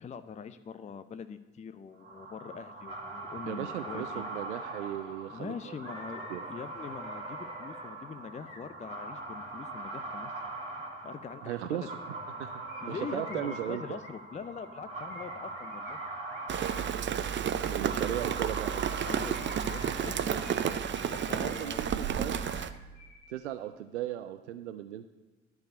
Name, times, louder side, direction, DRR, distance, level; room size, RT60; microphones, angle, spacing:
voice 1, 0.0-4.2 5.3-10.3 11.0-11.9 12.8-16.0 19.0-21.9, left 6 dB, 20° left, 12 dB, 0.5 m, -43 dB
sound 1, 2.0-20.9, right 2 dB, 20° right, 2.0 m, -42 dB
voice 2, 3.5-5.8 6.3-6.4 11.4-11.9 12.4-12.6 12.9-14.0 17.7-18.9 21.1-22.4 23.3-25.1, right 12 dB, 80° right, 10 dB, 0.5 m, -37 dB
sound 2, 4.2-4.3 4.6-9.4 12.7-16.9 18.7-23.3 23.6-23.7, left 3 dB, 55° left, 2.1 m, -53 dB
Rain, 16.5-22.7, right 8 dB, 35° right, 0.7 m, -31 dB
11.0 x 4.8 x 8.1 m, 1.2 s
figure-of-eight pair, 50°, 34 cm